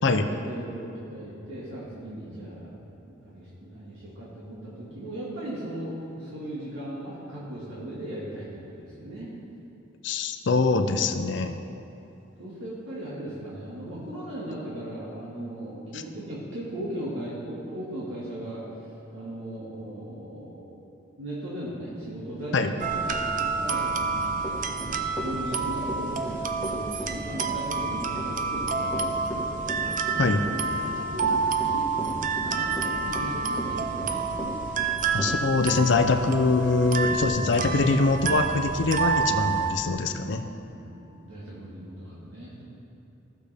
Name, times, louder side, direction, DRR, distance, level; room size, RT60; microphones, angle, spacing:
voice 1, 0.0-9.3 12.4-18.6 19.1-20.8 21.2-24.5 25.0-30.0 30.4-31.4 31.7-31.9 32.3-34.3 40.0-40.4 40.7-42.6, right 1 dB, 85° right, -7 dB, 1.8 m, -38 dB
voice 2, 10.0-11.6 22.5-22.7 30.2-30.4 35.1-40.4, left 3 dB, 60° left, 7 dB, 0.5 m, -23 dB
sound 1, 22.8-39.7, right 5 dB, 40° right, 0.5 m, -28 dB
Run / Walk footsteps, 24.4-36.1, right 1 dB, 10° right, 1.7 m, -36 dB
15.5 x 6.6 x 3.4 m, 2.9 s
head